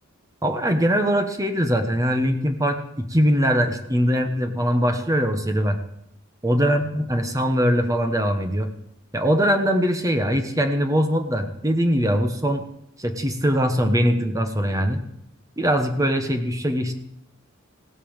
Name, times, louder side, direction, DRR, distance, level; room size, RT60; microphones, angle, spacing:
voice 1, 0.4-5.8 6.4-8.7 9.1-12.6 13.0-15.0 15.6-16.9, equal, 15° right, 6 dB, 1.2 m, -22 dB
17.0 x 8.3 x 7.3 m, 0.79 s
head